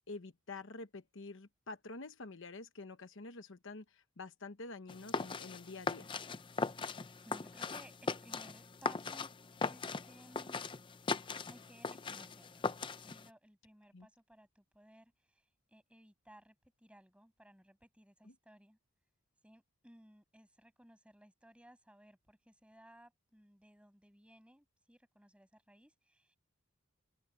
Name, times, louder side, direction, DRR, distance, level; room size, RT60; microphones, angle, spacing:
voice 1, 0.1-6.1 13.9-14.1 18.3-18.4, left 3 dB, 60° left, 1.0 m, -48 dB
sound 1, 4.9-13.3, left 4 dB, 20° left, 0.5 m, -39 dB
voice 2, 6.8-9.3 9.6-10.6 11.5-18.8 19.4-26.4, equal, 5° right, 7.0 m, -61 dB
open air
head